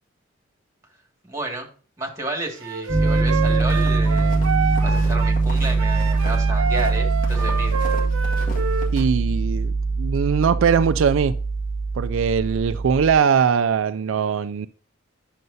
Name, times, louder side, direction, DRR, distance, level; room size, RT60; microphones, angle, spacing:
voice 1, 1.3-1.7 2.0-4.4 4.8-7.7, right 2 dB, 15° right, 2.0 m, -31 dB
Wind instrument woodwind instrument, 2.6-5.4 5.8-8.9, right 5 dB, 90° right, 0.7 m, -28 dB
Piano, 2.9-13.1, right 3 dB, 60° left, 3.7 m, -22 dB
sound 1, 3.2-9.0, equal, 40° left, 1.8 m, -39 dB
voice 2, 8.9-11.3 12.0-14.7, right 6 dB, 70° right, 0.4 m, -21 dB
9.3 x 6.6 x 2.7 m
head